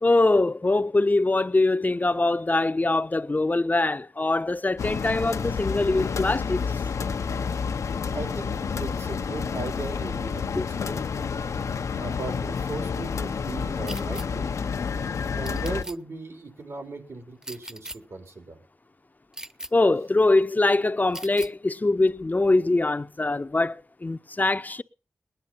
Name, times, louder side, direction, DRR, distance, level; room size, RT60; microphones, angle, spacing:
voice 1, 0.0-6.6 10.6-10.7 19.7-24.8, left 2 dB, 35° left, 0.7 m, -23 dB
sound 1, 4.8-15.8, left 6 dB, 85° left, 0.8 m, -29 dB
voice 2, 8.1-11.0 11.9-14.5 15.3-18.6, right 3 dB, 70° right, 4.2 m, -37 dB
sound 2, 13.9-14.3 15.4-16.0 17.4-18.0 19.3-19.7 21.1-21.5, right 1 dB, 10° right, 0.9 m, -38 dB
19.5 x 10.5 x 5.7 m
cardioid pair, 45°, 5 cm